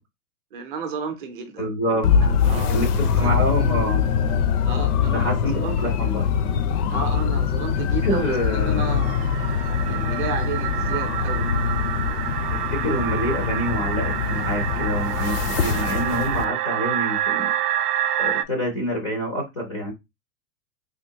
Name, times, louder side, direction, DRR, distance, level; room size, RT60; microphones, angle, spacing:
voice 1, 0.5-1.7 2.2-3.3 4.6-6.1 6.9-9.3 9.9-11.5, right 5 dB, 35° right, 0.5 m, -33 dB
voice 2, 1.6-2.1 2.7-4.0 5.1-6.2 8.0-9.1 9.9-10.1 12.5-17.5 18.2-19.9, equal, 25° left, 0.4 m, -27 dB
sound 1, 2.0-16.4, left 7 dB, 75° left, 0.7 m, -23 dB
sound 2, 8.4-18.4, right 12 dB, 80° right, 0.5 m, -28 dB
3.6 x 2.5 x 2.8 m
supercardioid pair, 175°, 46 cm